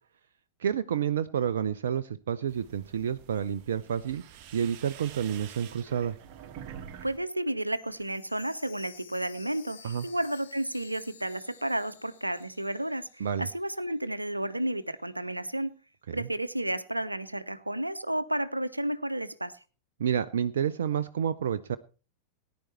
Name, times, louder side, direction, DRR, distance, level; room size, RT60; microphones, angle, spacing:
voice 1, 0.6-4.2 4.5-6.1 9.8-10.1 13.2-13.5 16.1-16.3 20.0-21.8, right 8 dB, 60° right, 11 dB, 0.6 m, -29 dB
sound 1, 2.5-7.2 7.5-8.1, right 9 dB, 40° right, 1.5 m, -47 dB
voice 2, 7.0-15.8 16.1-19.5, right 1 dB, 85° right, 13 dB, 0.9 m, -32 dB
Chime, 7.7-13.6 13.9-14.0 14.6-14.7, left 7 dB, 65° left, 2.0 m, -53 dB
18.5 x 10.5 x 4.4 m, 0.36 s
figure-of-eight pair, 90°, 0 cm